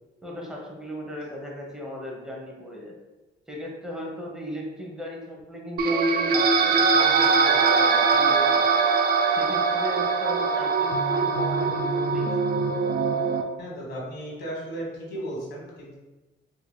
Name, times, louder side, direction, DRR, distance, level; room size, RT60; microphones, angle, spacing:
voice 1, 0.2-3.0 3.5-8.8 9.3-12.5, equal, 5° right, -2 dB, 0.9 m, -37 dB
sound 1, 5.8-13.4, right 4 dB, 50° right, 0.4 m, -22 dB
voice 2, 13.6-16.0, right 1 dB, 60° left, -3 dB, 1.3 m, -35 dB
4.7 x 2.8 x 2.2 m, 1.1 s
cardioid pair, 90°, 20 cm